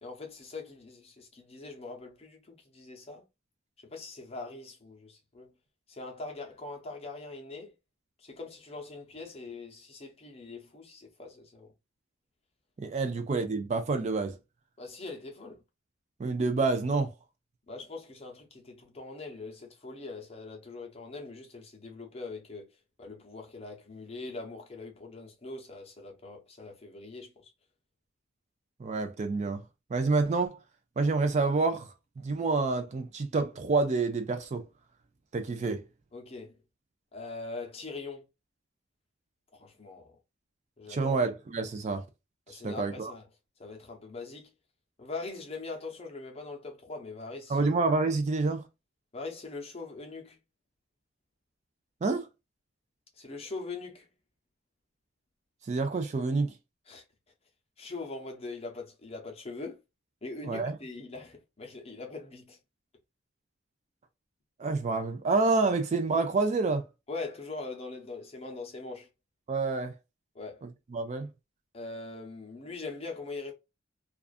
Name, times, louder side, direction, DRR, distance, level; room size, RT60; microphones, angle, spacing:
voice 1, 0.0-3.2 3.8-5.5 5.9-7.7 8.2-11.7 14.8-15.6 17.7-22.7 23.0-27.5 35.6-35.8 36.1-36.5 37.1-38.2 39.5-40.2 40.8-41.2 42.5-43.3 43.6-44.5 45.0-47.7 49.1-50.4 53.2-54.1 56.9-57.0 57.8-59.8 60.2-62.6 67.1-69.1 70.3-70.7 71.7-73.5, left 3 dB, 30° left, 0.7 m, -42 dB
voice 2, 12.8-14.4 16.2-17.1 28.8-29.6 29.9-30.6 31.0-31.9 32.2-34.7 35.3-35.8 40.9-42.0 42.6-43.1 47.5-48.7 52.0-52.3 55.7-56.5 60.4-60.8 64.6-66.8 69.5-69.9 70.6-71.3, right 3 dB, 35° right, 0.4 m, -28 dB
2.4 x 2.4 x 2.4 m
head